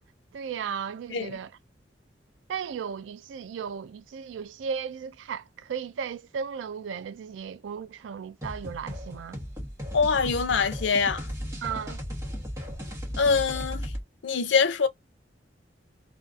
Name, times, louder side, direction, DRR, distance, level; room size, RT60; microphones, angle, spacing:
voice 1, 0.3-1.5 2.5-9.4 11.6-12.0, right 7 dB, 85° right, 0.3 m, -35 dB
sound 1, 8.4-14.0, equal, 15° right, 1.0 m, -36 dB
voice 2, 9.9-11.3 13.2-13.9 14.2-14.9, left 5 dB, 80° left, 0.5 m, -24 dB
2.6 x 2.3 x 2.4 m
head